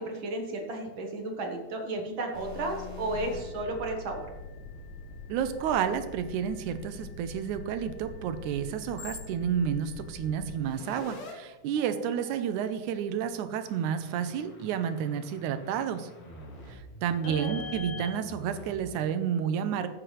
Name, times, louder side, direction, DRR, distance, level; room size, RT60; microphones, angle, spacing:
voice 1, 0.0-4.3 17.2-17.5, right 2 dB, 50° right, 2 dB, 1.7 m, -33 dB
sound 1, 2.3-11.3 11.8-13.2 13.6-19.0, left 3 dB, 80° left, 3.5 m, -44 dB
voice 2, 5.3-16.1 16.7-19.9, right 8 dB, 85° right, 10 dB, 2.2 m, -30 dB
14.5 x 7.6 x 3.3 m, 1.1 s
omnidirectional pair, 3.5 m